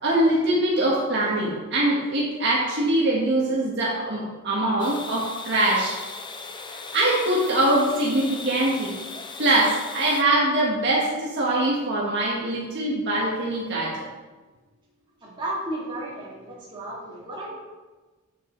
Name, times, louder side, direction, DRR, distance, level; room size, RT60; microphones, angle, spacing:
voice 1, 0.0-5.9 6.7-8.9 9.4-14.1, right 1 dB, 50° right, -5 dB, 1.6 m, -23 dB
sound 1, 4.8-10.2, left 4 dB, 20° left, 0.6 m, -38 dB
voice 2, 15.2-17.5, right 1 dB, 20° right, -7 dB, 2.8 m, -33 dB
8.6 x 7.6 x 4.0 m, 1.3 s
head